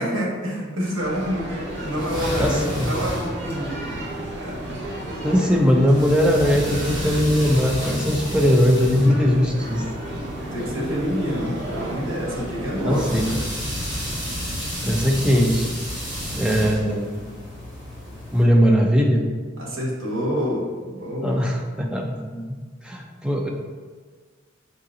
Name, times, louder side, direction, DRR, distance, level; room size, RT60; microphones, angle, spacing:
voice 1, 0.0-4.0 4.4-4.8 5.2-5.3 10.5-13.4 19.6-21.5, equal, 90° right, -3 dB, 1.1 m, -27 dB
sound 1, 0.9-13.2, right 1 dB, 55° right, 0.7 m, -33 dB
sound 2, 1.7-18.4, equal, 25° right, 1.4 m, -32 dB
voice 2, 2.4-3.0 5.2-9.8 12.8-13.3 14.8-15.7 16.3-17.1 18.3-19.3 21.2-22.4 22.8-23.5, equal, 5° right, 0 dB, 0.3 m, -20 dB
5.4 x 2.8 x 2.5 m, 1.5 s
head